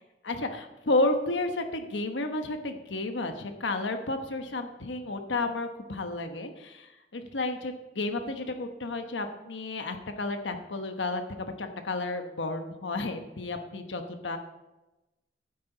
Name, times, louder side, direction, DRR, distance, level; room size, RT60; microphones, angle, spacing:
voice 1, 0.2-14.4, left 2 dB, 90° left, 6 dB, 1.1 m, -32 dB
12.5 x 9.7 x 4.0 m, 1.0 s
head